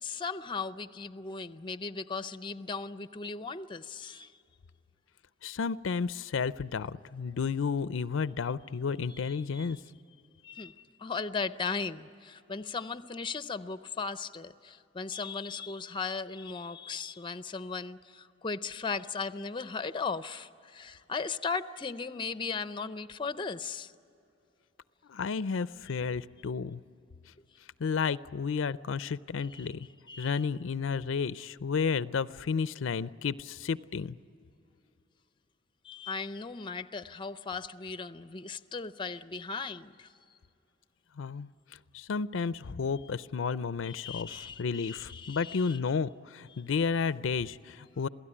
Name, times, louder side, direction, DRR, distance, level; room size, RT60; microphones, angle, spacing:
voice 1, 0.0-4.3 9.1-9.8 10.4-10.7 11.0-23.9 29.5-29.7 30.1-30.5 35.8-40.1 43.8-45.8 46.5-46.6, left 4 dB, 25° left, 13 dB, 0.5 m, -37 dB
voice 2, 5.4-9.8 25.1-26.8 27.8-29.9 30.2-34.2 41.2-41.5 41.9-48.1, left 5 dB, 85° left, 16 dB, 0.5 m, -32 dB
27.5 x 17.0 x 9.9 m, 2.8 s
head